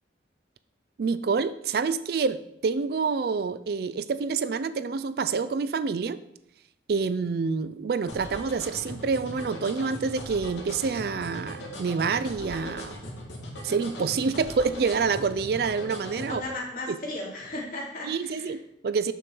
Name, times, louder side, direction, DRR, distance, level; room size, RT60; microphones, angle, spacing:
voice 1, 1.0-6.2 6.9-12.9 13.6-16.4 16.9-17.0 18.0-19.1, right 5 dB, 55° right, 14 dB, 0.4 m, -27 dB
sound 1, 8.1-16.4, equal, 75° left, 1.9 m, -39 dB
voice 2, 16.2-18.6, left 1 dB, 45° left, -4 dB, 2.7 m, -35 dB
6.9 x 6.3 x 4.5 m, 0.75 s
head